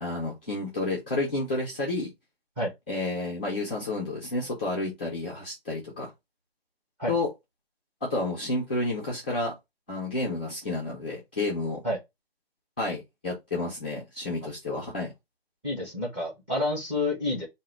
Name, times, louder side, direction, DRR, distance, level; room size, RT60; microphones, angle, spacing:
voice 1, 0.0-2.1 2.9-6.1 7.1-7.3 8.0-9.5 9.9-11.8 12.8-15.1, left 2 dB, 10° left, 0.6 m, -30 dB
voice 2, 15.6-17.5, left 1 dB, 10° right, 1.3 m, -29 dB
3.7 x 2.7 x 4.6 m
hypercardioid pair, 170°, 32 cm